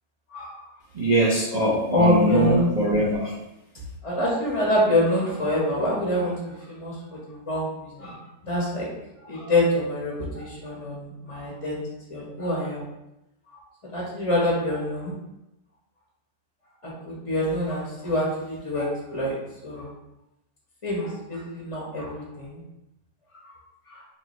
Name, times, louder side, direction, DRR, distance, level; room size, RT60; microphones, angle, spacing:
voice 1, 0.3-0.7 1.9-2.7 4.0-8.9 9.2-11.8 12.1-12.8 13.9-15.1 16.8-19.3 19.6-19.9 20.8-22.6 23.9-24.0, left 1 dB, 30° left, -4 dB, 0.5 m, -26 dB
voice 2, 0.9-3.3, right 1 dB, 65° right, -6 dB, 0.4 m, -22 dB
5.5 x 2.3 x 3.1 m, 0.91 s
omnidirectional pair, 1.9 m